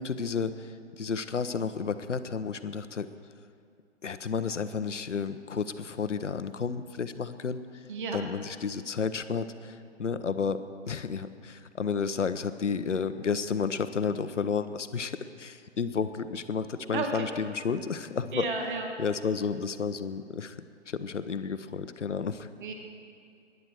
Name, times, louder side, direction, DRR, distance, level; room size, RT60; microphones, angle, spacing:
voice 1, 0.0-3.1 4.0-7.8 8.1-10.6 10.9-18.5 19.0-20.6 20.9-22.5, left 5 dB, 75° left, 11 dB, 0.9 m, -32 dB
voice 2, 16.9-17.2 18.3-18.9 22.6-22.7, right 4 dB, 40° right, 3 dB, 1.8 m, -32 dB
21.5 x 11.0 x 4.5 m, 2.5 s
figure-of-eight pair, 135°, 37 cm